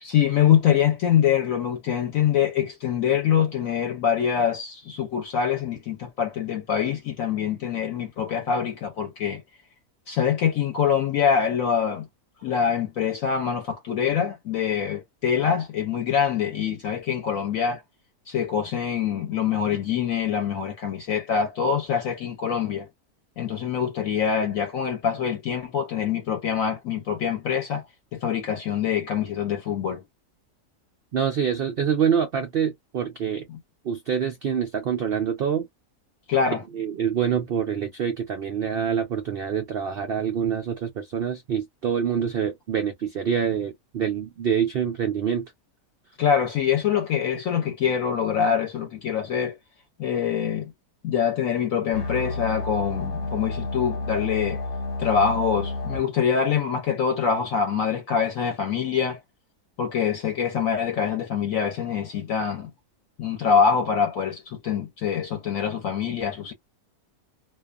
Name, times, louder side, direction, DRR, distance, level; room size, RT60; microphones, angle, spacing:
voice 1, 0.0-9.4 10.1-12.0 12.4-17.8 18.3-22.9 23.4-27.8 28.1-30.0 33.5-33.6 36.3-36.6 46.2-49.6 50.0-50.7 51.0-54.6 55.0-59.2 59.8-62.7 63.2-66.5, left 7 dB, 70° left, 0.9 m, -24 dB
voice 2, 31.1-33.4 33.8-35.7 36.7-45.5, right 8 dB, 85° right, 0.5 m, -26 dB
sound 1, 51.9-56.0, left 2 dB, 45° left, 0.9 m, -30 dB
2.5 x 2.3 x 2.3 m
omnidirectional pair, 1.6 m